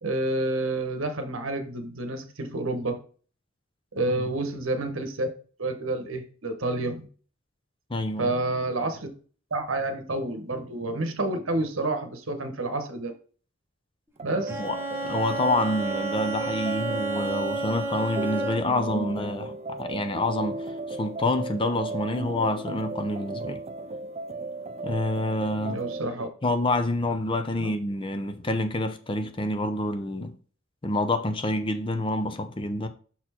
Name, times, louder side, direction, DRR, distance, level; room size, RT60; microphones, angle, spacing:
voice 1, 0.0-3.0 3.9-5.3 5.6-7.1 8.2-9.1 9.5-13.1 14.2-14.6 25.5-26.3 27.6-27.7, right 2 dB, 75° right, 1.2 m, -29 dB
voice 2, 7.9-8.3 14.6-14.8 15.0-23.6 24.8-25.8 26.4-30.3 30.8-32.9, left 2 dB, 25° left, 0.6 m, -27 dB
sound 1, 14.2-26.1, right 3 dB, 30° right, 0.4 m, -36 dB
Bowed string instrument, 14.5-18.9, right 3 dB, 10° right, 1.1 m, -31 dB
6.0 x 4.3 x 4.3 m
head